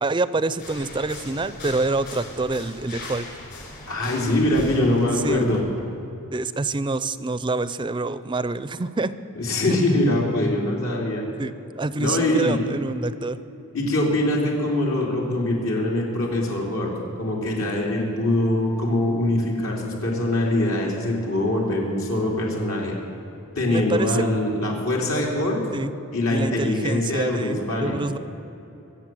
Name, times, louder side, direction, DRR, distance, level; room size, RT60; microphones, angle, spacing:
voice 1, 0.0-3.3 5.2-5.5 6.3-9.1 11.4-13.4 23.7-24.2 25.7-25.9 26.3-28.2, right 3 dB, 20° right, 14 dB, 0.5 m, -26 dB
sound 1, 0.6-5.6, left 2 dB, 55° left, 4.7 m, -39 dB
voice 2, 3.9-5.6 9.4-11.2 12.0-12.6 13.7-23.0 23.6-25.6 26.1-28.0, left 1 dB, 75° left, -2 dB, 3.1 m, -23 dB
23.5 x 8.1 x 7.6 m, 3.0 s
head